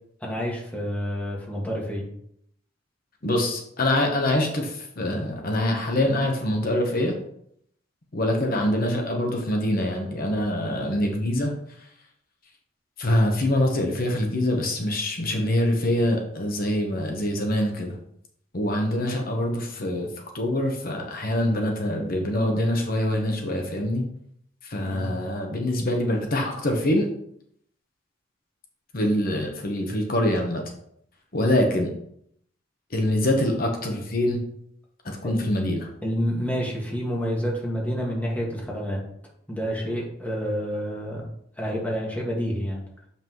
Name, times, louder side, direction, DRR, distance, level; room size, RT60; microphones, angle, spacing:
voice 1, 0.2-2.1 24.9-25.1 35.2-35.3 36.0-39.0 39.5-41.2 41.6-42.8, equal, 10° left, -3 dB, 1.7 m, -28 dB
voice 2, 3.2-7.1 8.1-11.5 13.0-18.0 18.5-20.1 20.3-24.0 24.6-27.1 28.9-30.6 31.3-31.9 32.9-34.4 35.0-35.9, left 1 dB, 50° left, 2 dB, 1.1 m, -24 dB
7.2 x 5.8 x 3.0 m, 0.70 s
head